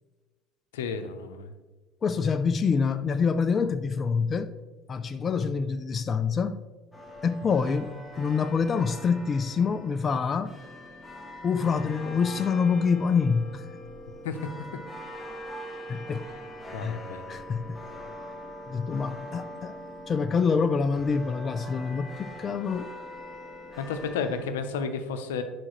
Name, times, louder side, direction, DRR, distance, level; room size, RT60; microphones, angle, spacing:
voice 1, 0.7-1.5 14.2-14.4 16.7-17.2 23.8-25.4, left 5 dB, 90° left, 0.7 m, -32 dB
voice 2, 2.0-4.5 4.9-6.6 7.2-10.5 11.4-13.7 15.9-16.2 16.8-17.0 17.3-17.8 18.7-19.8 20.1-22.9, left 5 dB, 35° left, 0.4 m, -26 dB
sound 1, 6.9-24.5, left 1 dB, 10° left, 1.3 m, -42 dB
10.5 x 4.9 x 3.1 m
supercardioid pair, 90°, 0 cm